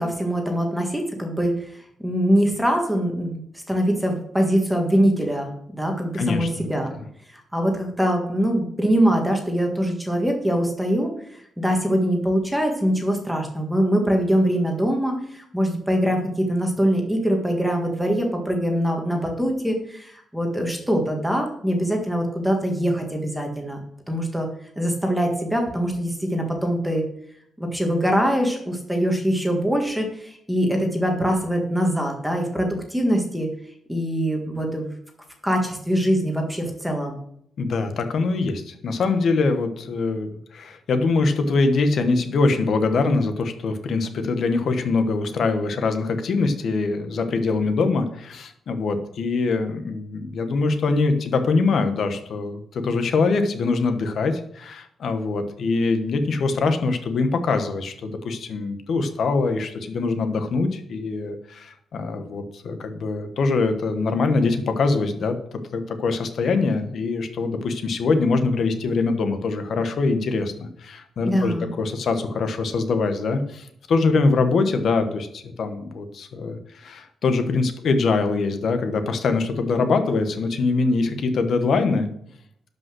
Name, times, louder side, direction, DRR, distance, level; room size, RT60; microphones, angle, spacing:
voice 1, 0.0-6.9 7.3-23.8 24.1-24.5 24.7-27.0 27.6-33.5 33.9-34.9 35.4-37.2 71.2-71.7, equal, 5° right, 2 dB, 1.6 m, -23 dB
voice 2, 6.1-6.5 6.9-7.0 37.6-65.4 65.7-82.1, left 3 dB, 55° left, 8 dB, 1.2 m, -23 dB
12.0 x 5.4 x 6.3 m, 0.69 s
wide cardioid pair, 175°, 0 cm